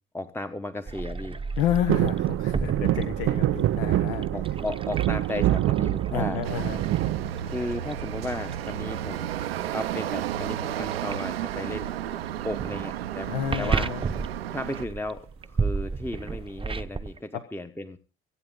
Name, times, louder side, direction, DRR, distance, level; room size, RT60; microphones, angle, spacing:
voice 1, 0.1-1.4 4.3-6.4 7.4-9.3 9.7-11.9 12.4-13.9 14.5-18.0, left 1 dB, 5° left, 9 dB, 1.0 m, -34 dB
sound 1, 0.9-17.2, right 4 dB, 20° right, 0.8 m, -35 dB
voice 2, 1.6-4.3 6.1-6.8 13.3-14.0 17.3-17.4, left 11 dB, 75° left, 9 dB, 1.2 m, -30 dB
sound 2, 1.9-8.1 8.5-9.1 10.4-10.8 11.0-11.1 11.4-11.7 12.6-13.5 14.0-14.1, right 14 dB, 50° right, 0.6 m, -26 dB
sound 3, 6.4-14.9, right 11 dB, 90° right, 0.6 m, -33 dB
24.0 x 8.8 x 3.9 m, 0.36 s
hypercardioid pair, 55°, 29 cm